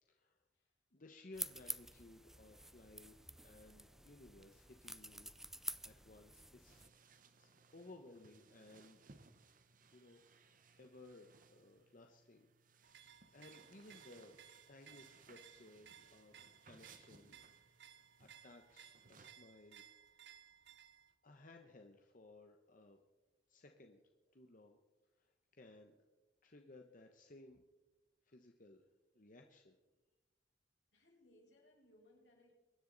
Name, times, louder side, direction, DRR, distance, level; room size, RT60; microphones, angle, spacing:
voice 1, 0.1-0.4 0.9-5.3 5.8-9.0 9.9-10.2 10.8-12.5 12.8-14.4 14.7-17.4 17.9-19.8 21.2-23.0 23.5-24.0 24.3-24.8 25.2-25.9 26.4-27.6 28.2-28.8 29.1-29.8, left 2 dB, 50° left, 4 dB, 1.0 m, -60 dB
sound 1, 1.3-6.9, right 1 dB, ahead, 0.4 m, -49 dB
sound 2, 6.7-19.3, right 4 dB, 50° right, 0.9 m, -65 dB
sound 3, 12.8-21.1, right 9 dB, 80° right, 0.8 m, -61 dB
voice 2, 30.9-32.5, left 1 dB, 85° left, -2 dB, 5.5 m, -68 dB
23.5 x 10.0 x 4.0 m, 1.1 s
head